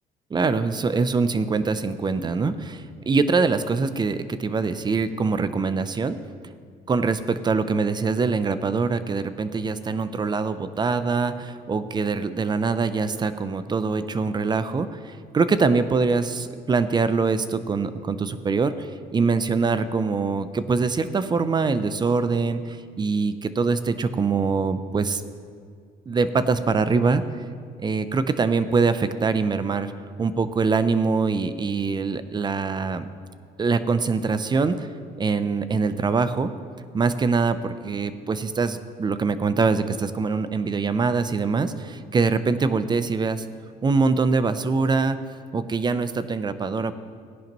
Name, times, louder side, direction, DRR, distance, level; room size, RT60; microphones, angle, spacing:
voice 1, 0.3-6.2 6.9-25.2 26.1-27.2 27.8-29.9 30.2-33.1 33.6-34.9 35.2-36.5 36.9-43.4 43.8-45.2 45.5-46.9, right 4 dB, 25° right, 12 dB, 0.6 m, -23 dB
16.5 x 10.5 x 3.0 m, 2.1 s
cardioid pair, 110°, 17 cm